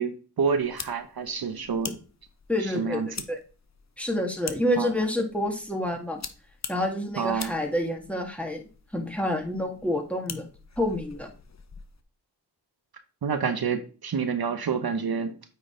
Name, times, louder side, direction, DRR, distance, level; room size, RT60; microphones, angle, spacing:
voice 1, 0.0-1.9 2.6-3.2 4.8-4.9 7.2-7.5 13.2-15.3, right 6 dB, 60° right, 9 dB, 0.8 m, -28 dB
sound 1, 0.6-12.0, left 5 dB, 40° left, 0.8 m, -44 dB
voice 2, 2.5-3.4 4.0-6.2 6.7-8.6 8.9-10.5 10.8-11.3, left 1 dB, 5° left, 2 dB, 1.8 m, -28 dB
8.9 x 3.8 x 3.8 m, 0.38 s
cardioid pair, 45°, 41 cm